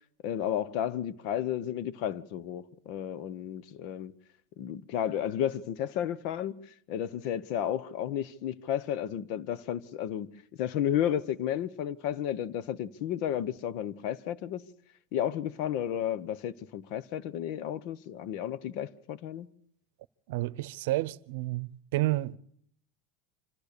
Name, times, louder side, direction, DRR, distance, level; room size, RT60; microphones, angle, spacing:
voice 1, 0.2-4.1 4.6-10.3 10.6-14.7 15.1-19.5, left 10 dB, 55° left, 1.0 m, -32 dB
voice 2, 20.3-22.4, right 17 dB, 75° right, 0.8 m, -30 dB
26.0 x 15.0 x 6.8 m
supercardioid pair, 170°, 0 cm